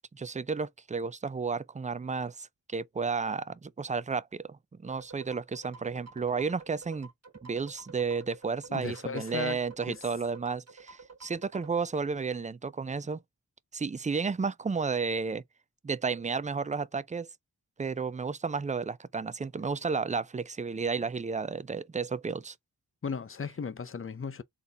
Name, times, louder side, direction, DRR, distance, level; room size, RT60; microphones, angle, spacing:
voice 1, 0.1-7.1 7.4-13.2 13.7-15.4 15.8-17.3 17.8-22.6, right 5 dB, 20° right, 0.3 m, -32 dB
sound 1, 4.9-11.7, right 4 dB, 40° right, 1.5 m, -50 dB
voice 2, 8.7-9.6 9.9-10.0 23.0-24.4, left 6 dB, 35° left, 0.6 m, -36 dB
4.0 x 4.0 x 3.3 m
wide cardioid pair, 100°, 38 cm